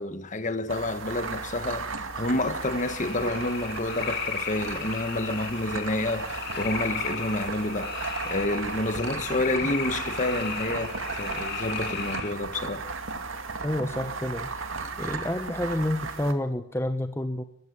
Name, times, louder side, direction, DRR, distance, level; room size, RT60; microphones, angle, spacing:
voice 1, 0.0-1.9 2.1-12.9, left 2 dB, 35° left, 1.4 m, -29 dB
sound 1, 0.7-16.3, right 4 dB, 80° right, 2.3 m, -35 dB
sound 2, 2.6-12.3, left 7 dB, 55° left, 2.4 m, -36 dB
voice 2, 13.6-14.5 15.0-17.4, left 1 dB, 15° left, 1.0 m, -29 dB
22.0 x 15.0 x 9.6 m
head